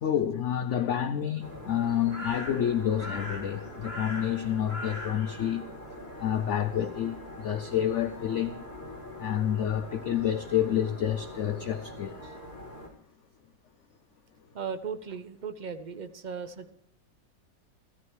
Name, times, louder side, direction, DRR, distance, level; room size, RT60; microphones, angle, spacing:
voice 1, 0.0-5.7 6.2-8.6 9.2-12.4, left 10 dB, 80° left, 0.6 m, -29 dB
sound 1, 1.4-12.9, left 1 dB, 30° right, 3.7 m, -41 dB
voice 2, 14.5-16.7, right 6 dB, 55° right, 0.5 m, -37 dB
15.0 x 14.0 x 3.1 m
omnidirectional pair, 1.9 m